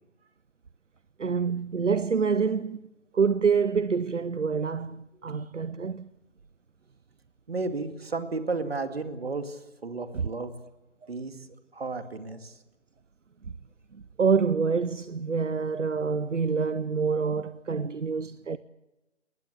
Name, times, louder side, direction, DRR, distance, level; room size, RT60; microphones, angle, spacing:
voice 1, 1.2-2.8 3.1-6.1 10.1-10.3 11.0-11.1 13.9-18.6, right 5 dB, 80° right, 0.8 m, -27 dB
voice 2, 7.5-10.5 11.1-11.4 11.7-12.5, right 3 dB, 55° right, 2.4 m, -33 dB
20.5 x 20.0 x 8.1 m
figure-of-eight pair, 155°, 36 cm